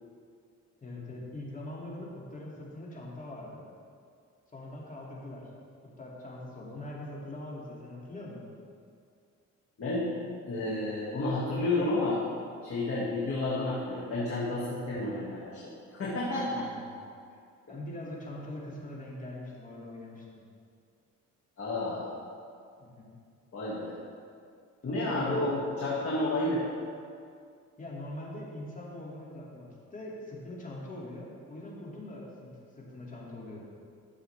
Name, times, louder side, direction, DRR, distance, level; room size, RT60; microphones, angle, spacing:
voice 1, 0.8-3.6 4.5-5.5 6.0-8.5 16.5-16.9 17.7-20.4 22.8-23.1 24.8-25.6 27.8-33.6, left 1 dB, 25° left, -4 dB, 2.3 m, -42 dB
voice 2, 9.8-10.1 10.5-12.2 12.6-16.7 21.6-22.1 23.5-24.0 24.8-26.6, left 2 dB, 50° left, -7 dB, 2.0 m, -31 dB
12.5 x 6.8 x 3.4 m, 2.3 s
cardioid pair, 90°, 30 cm